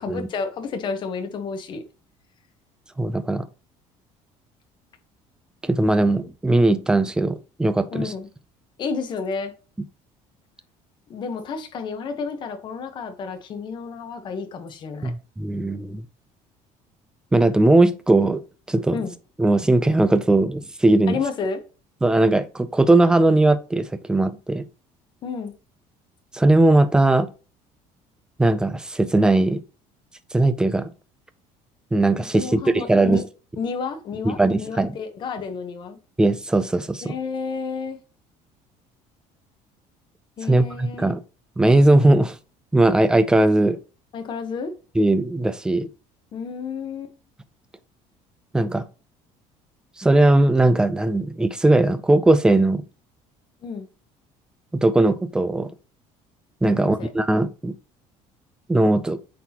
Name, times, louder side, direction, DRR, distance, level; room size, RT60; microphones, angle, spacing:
voice 1, 0.0-1.8 7.9-8.3 8.8-9.5 11.1-15.1 18.9-19.1 21.1-21.6 25.2-25.5 32.3-33.2 33.6-36.0 37.0-38.0 40.4-41.1 44.1-44.7 46.3-47.1 53.6-53.9 56.7-57.1, left 5 dB, 35° left, 1.1 m, -31 dB
voice 2, 3.0-3.5 5.6-8.1 15.0-16.0 17.3-18.4 18.7-19.0 19.4-21.2 22.0-24.6 26.3-27.3 28.4-29.6 30.3-30.9 31.9-33.2 34.2-34.9 36.2-37.2 40.5-41.2 41.6-42.4 42.7-43.8 45.0-45.9 48.5-48.9 50.0-52.8 54.8-55.7 56.6-57.7 58.7-59.2, right 2 dB, 5° right, 0.4 m, -19 dB
8.1 x 4.1 x 2.9 m
cardioid pair, 170°, 13 cm